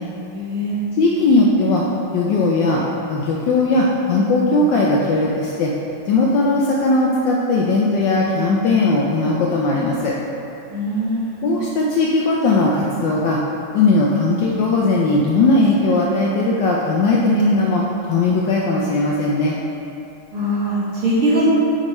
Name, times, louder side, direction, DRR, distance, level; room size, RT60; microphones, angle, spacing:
voice 1, 0.3-0.8 10.7-11.4 20.3-21.5, right 1 dB, 75° right, -10 dB, 2.6 m, -21 dB
voice 2, 1.0-1.8 2.1-2.8 3.1-5.7 6.1-10.1 11.4-13.4 13.7-17.8 18.1-19.5, left 2 dB, 75° left, -3 dB, 1.0 m, -18 dB
6.5 x 4.8 x 3.1 m, 2.8 s
omnidirectional pair, 2.4 m